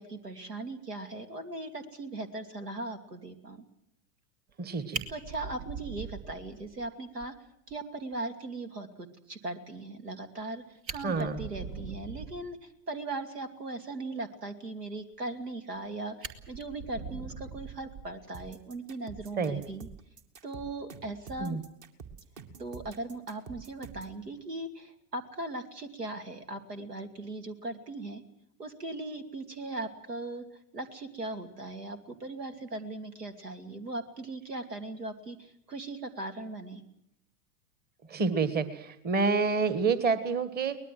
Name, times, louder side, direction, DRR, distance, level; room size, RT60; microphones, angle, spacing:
voice 1, 0.0-3.6 5.1-7.4 7.7-19.9 20.4-21.6 22.6-28.2 28.6-36.8, right 2 dB, 80° right, 8 dB, 2.7 m, -39 dB
Fire, 4.5-4.6 4.9-6.9 7.2-7.3 7.7-7.8 8.1-8.2 10.4-10.5 10.8-12.5 15.3-15.8 16.2-18.4 19.7-19.9, right 5 dB, 60° right, 2.4 m, -41 dB
voice 2, 4.6-5.0 11.0-11.4 19.4-19.6 21.4-21.6 38.1-40.8, right 4 dB, 20° right, 13 dB, 1.6 m, -28 dB
sound 1, 18.3-24.2, right 6 dB, 40° right, 2.5 m, -47 dB
23.5 x 20.0 x 7.7 m, 0.77 s
figure-of-eight pair, 95°, 46 cm